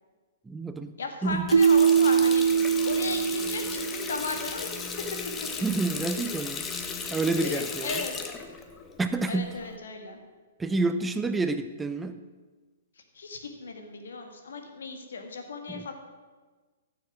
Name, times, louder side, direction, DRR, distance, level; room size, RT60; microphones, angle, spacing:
voice 1, 0.5-0.9 1.2-1.5 5.6-6.7 7.1-8.0 9.0-9.5 10.6-12.2 15.7-15.9, right 3 dB, 10° right, 9 dB, 0.5 m, -28 dB
voice 2, 1.0-4.7 7.3-8.1 9.3-10.2 13.1-15.9, left 3 dB, 65° left, 4 dB, 2.0 m, -36 dB
Water tap faucet, 1.3-9.7, left 5 dB, 15° left, 1.1 m, -36 dB
Keyboard (musical), 1.5-4.4, right 6 dB, 70° right, 0.4 m, -22 dB
14.5 x 7.1 x 6.3 m, 1.4 s
figure-of-eight pair, 115°, 0 cm